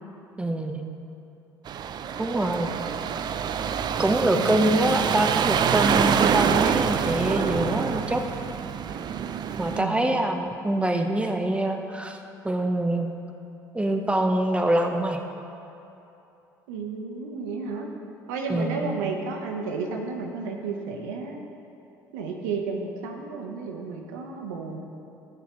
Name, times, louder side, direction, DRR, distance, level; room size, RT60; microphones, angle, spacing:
voice 1, 0.4-0.8 2.2-2.7 4.0-8.2 9.6-12.2 12.4-13.1 13.7-15.2 18.5-18.9, right 1 dB, 10° right, 5 dB, 1.1 m, -25 dB
sound 1, 1.7-9.8, right 7 dB, 45° right, 0.5 m, -26 dB
voice 2, 4.3-4.7 9.8-10.3 16.7-17.9 18.3-21.4 22.1-24.8, right 4 dB, 80° right, 2 dB, 1.1 m, -32 dB
20.0 x 6.9 x 3.2 m, 2.9 s
hypercardioid pair, 60°, 10 cm